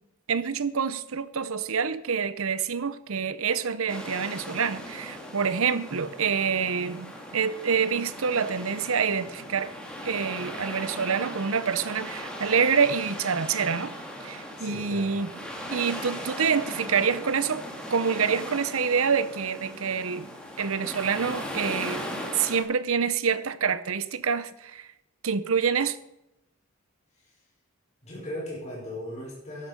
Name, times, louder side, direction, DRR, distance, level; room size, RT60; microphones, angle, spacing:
voice 1, 0.3-9.7 10.0-13.9 14.2-15.3 15.7-17.6 17.9-20.3 20.6-22.0 22.3-24.9 25.2-26.0, right 6 dB, 75° right, 0.8 m, -27 dB
sound 1, 3.9-22.6, equal, 5° left, 2.0 m, -38 dB
voice 2, 14.6-15.1 27.2-27.3 28.0-29.7, left 1 dB, 30° left, 5.4 m, -37 dB
12.0 x 11.0 x 5.2 m
head